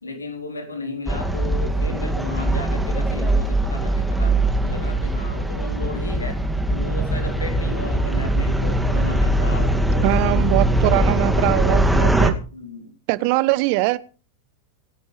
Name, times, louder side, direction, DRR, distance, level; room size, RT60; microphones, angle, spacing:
voice 1, 0.0-6.4 6.7-11.3 12.5-12.9, left 3 dB, 75° left, 4 dB, 3.8 m, -34 dB
sound 1, 1.1-12.3, right 1 dB, 5° right, 2.2 m, -21 dB
voice 2, 10.0-12.3 13.1-14.0, right 20 dB, 45° right, 18 dB, 1.0 m, -21 dB
26.5 x 11.0 x 3.3 m, 0.38 s
figure-of-eight pair, 90°, 0 cm